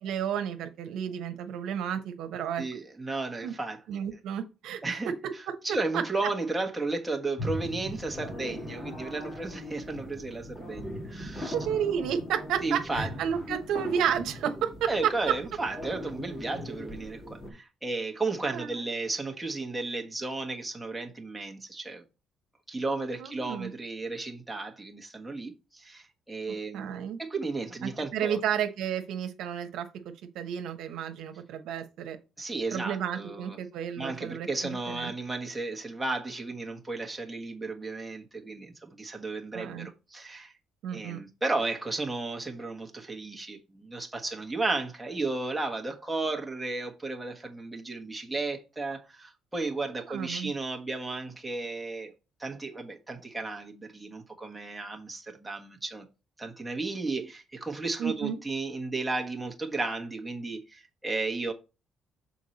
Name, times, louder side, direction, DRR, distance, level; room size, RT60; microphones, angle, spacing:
voice 1, 0.0-2.6 3.4-3.5 3.9-4.8 5.5-5.6 5.9-6.0 11.5-15.3 18.5-18.8 23.2-23.7 26.7-27.2 27.8-29.9 30.3-32.2 32.7-35.1 39.5-39.9 40.8-41.2 50.1-50.5 58.0-58.4, right 9 dB, 80° right, 1.0 m, -31 dB
voice 2, 2.6-3.8 4.8-5.1 5.6-11.5 12.6-13.1 14.9-22.0 22.7-28.4 32.4-33.6 34.0-40.5 40.9-52.1 52.4-56.1 56.4-61.5, right 3 dB, 10° right, 1.3 m, -34 dB
sound 1, 7.4-17.5, equal, 35° left, 2.5 m, -39 dB
6.4 x 4.5 x 4.2 m
cardioid pair, 115°, 0 cm